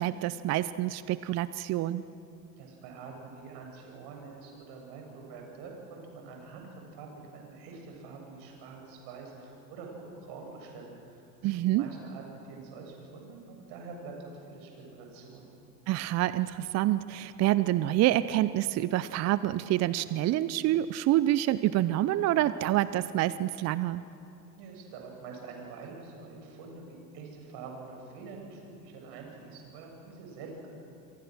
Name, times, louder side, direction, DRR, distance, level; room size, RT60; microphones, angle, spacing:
voice 1, 0.0-2.0 11.4-11.9 15.9-24.0, right 14 dB, 35° right, 16 dB, 0.7 m, -27 dB
voice 2, 2.6-7.1 7.3-15.5 24.6-30.7, right 4 dB, 50° right, 1 dB, 7.4 m, -46 dB
28.0 x 24.5 x 6.4 m, 2.8 s
figure-of-eight pair, 80°, 49 cm